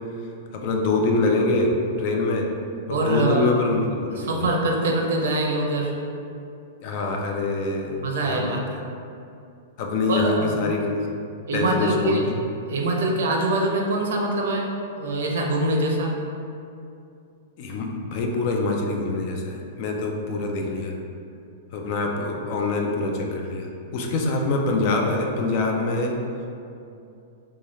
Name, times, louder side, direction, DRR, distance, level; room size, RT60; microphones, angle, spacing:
voice 1, 0.5-1.7 2.0-2.5 2.9-4.5 6.8-8.8 9.8-11.0 11.5-12.4 17.6-20.9 21.7-26.1, left 3 dB, 40° left, 1 dB, 0.4 m, -25 dB
voice 2, 2.9-3.6 4.1-5.9 8.0-8.6 10.1-10.5 11.5-12.2 12.7-16.1, right 2 dB, 70° right, 0 dB, 0.6 m, -24 dB
3.2 x 2.3 x 4.0 m, 2.6 s
supercardioid pair, 165°, 0 cm